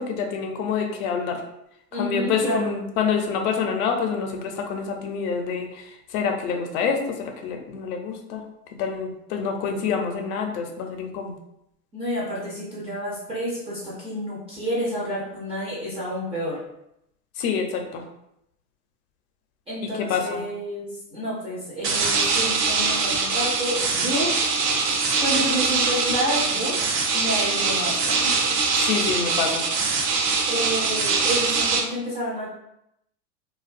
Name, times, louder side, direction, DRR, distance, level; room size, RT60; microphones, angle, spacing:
voice 1, 0.0-1.4 1.9-8.4 8.8-11.4 17.4-18.0 19.8-20.4 28.8-29.7, left 6 dB, 60° left, 3 dB, 0.6 m, -27 dB
voice 2, 1.9-2.8 11.9-16.6 19.7-24.3 25.2-26.8 27.1-28.5 30.5-32.5, equal, 15° right, -7 dB, 0.4 m, -29 dB
sound 1, 21.8-31.8, right 4 dB, 75° right, 0.7 m, -23 dB
2.5 x 2.3 x 2.4 m, 0.81 s
hypercardioid pair, 120°, 49 cm